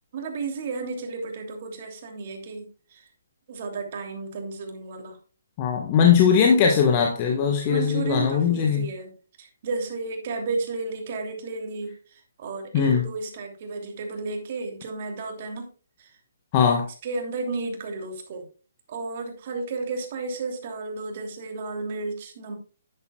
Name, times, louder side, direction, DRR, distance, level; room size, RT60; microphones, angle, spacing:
voice 1, 0.1-3.1 3.5-5.2 7.6-9.1 9.4-15.7 16.0-16.2 17.0-18.5 18.9-22.6, right 3 dB, 45° right, 3 dB, 3.0 m, -33 dB
voice 2, 5.6-8.9 12.7-13.1 16.5-16.9, left 7 dB, 35° left, 2 dB, 1.5 m, -20 dB
10.5 x 10.5 x 2.4 m, 0.37 s
figure-of-eight pair, 135°, 0 cm